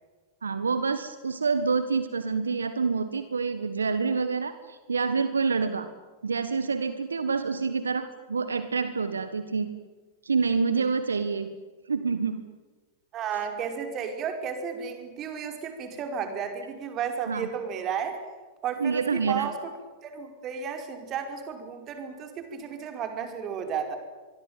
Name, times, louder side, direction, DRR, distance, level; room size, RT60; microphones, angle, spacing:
voice 1, 0.4-5.9 6.2-9.7 10.2-11.5 11.9-12.4 17.3-17.5 18.8-19.5, right 5 dB, 80° right, 11 dB, 1.5 m, -27 dB
voice 2, 13.1-18.2 18.6-19.7 20.0-24.0, right 7 dB, 35° right, 6 dB, 5.4 m, -33 dB
25.5 x 23.5 x 9.2 m, 1.3 s
figure-of-eight pair, 95°, 0 cm